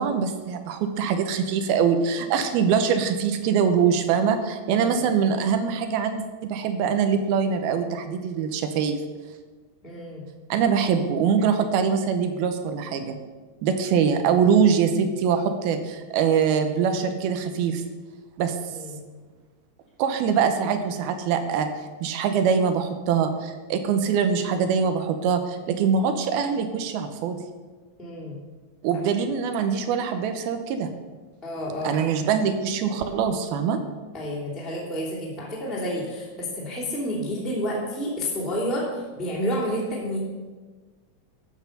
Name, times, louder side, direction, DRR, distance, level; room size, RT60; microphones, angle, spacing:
voice 1, 0.0-9.0 10.5-13.2 13.6-17.8 18.4-18.6 20.0-21.7 22.0-27.4 28.8-30.9 31.8-33.8, right 6 dB, 75° right, 7 dB, 2.6 m, -23 dB
voice 2, 4.7-5.0 9.8-10.2 18.7-19.0 28.0-28.4 31.4-32.0 34.1-40.2, equal, ahead, -6 dB, 2.3 m, -30 dB
13.0 x 6.5 x 6.7 m, 1.3 s
omnidirectional pair, 4.6 m